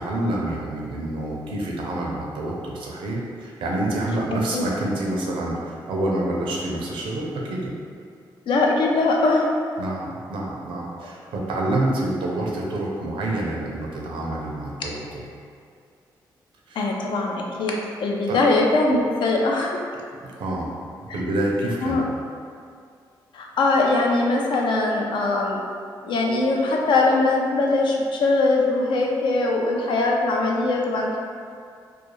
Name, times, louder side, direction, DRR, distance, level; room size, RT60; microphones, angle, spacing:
voice 1, 0.0-7.7 9.8-15.2 16.7-16.9 18.3-18.4 20.4-20.7 21.1-22.1, right 1 dB, 80° right, -2 dB, 0.5 m, -27 dB
voice 2, 4.3-4.7 8.5-9.5 16.8-19.8 21.8-22.0 23.3-25.6 26.0-31.2, left 2 dB, 70° left, -1 dB, 0.4 m, -21 dB
2.4 x 2.2 x 3.0 m, 2.3 s
cardioid pair, 70°, 9 cm